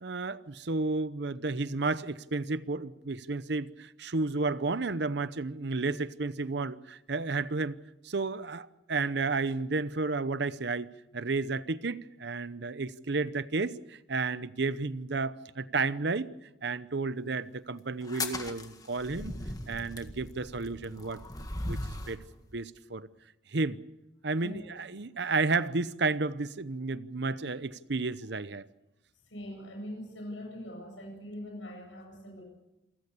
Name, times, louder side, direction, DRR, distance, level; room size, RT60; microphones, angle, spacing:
voice 1, 0.0-7.8 8.0-16.3 16.6-19.3 19.7-22.2 22.5-23.1 23.5-23.8 24.2-28.7, right 3 dB, 65° right, 0.8 m, -32 dB
sound 1, 18.0-22.2, left 2 dB, 20° left, 1.8 m, -38 dB
voice 2, 29.3-32.4, equal, 85° left, 7.9 m, -42 dB
28.0 x 15.5 x 8.3 m
head